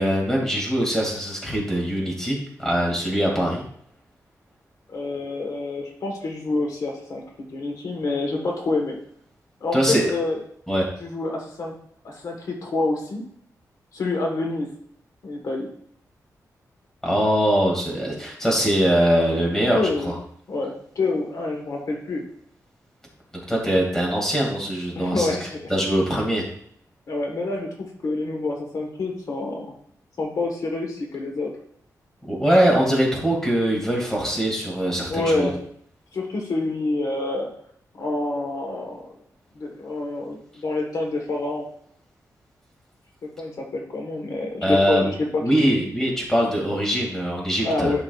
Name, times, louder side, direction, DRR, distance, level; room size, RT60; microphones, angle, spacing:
voice 1, 0.0-3.6 9.7-10.1 10.7-10.9 17.0-19.8 20.0-20.1 23.5-25.4 25.7-26.4 32.3-35.5 44.6-45.1 45.4-47.9, equal, 5° left, -2 dB, 2.1 m, -22 dB
voice 2, 4.9-9.0 9.6-10.4 11.0-11.7 12.0-13.2 13.9-14.7 15.2-15.7 19.7-20.1 20.5-22.2 24.9-25.7 27.1-29.7 30.2-31.5 35.0-35.6 36.1-37.5 37.9-39.1 39.5-41.7 43.2-45.7 47.6-48.0, left 2 dB, 65° left, 1 dB, 1.2 m, -27 dB
11.0 x 4.9 x 2.4 m, 0.65 s
wide cardioid pair, 150°, 6 cm